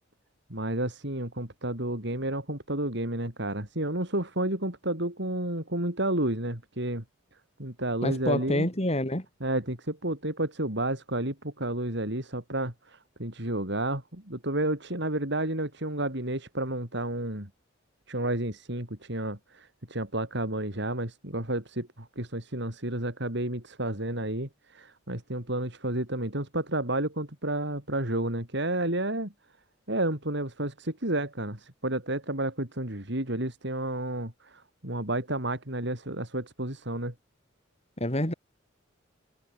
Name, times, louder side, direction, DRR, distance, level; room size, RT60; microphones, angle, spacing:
voice 1, 0.5-7.0 7.6-8.7 9.4-17.5 18.1-29.3 29.9-37.1, right 1 dB, 60° right, 5.1 m, -31 dB
voice 2, 8.0-9.3 38.0-38.3, left 1 dB, 30° left, 5.9 m, -27 dB
head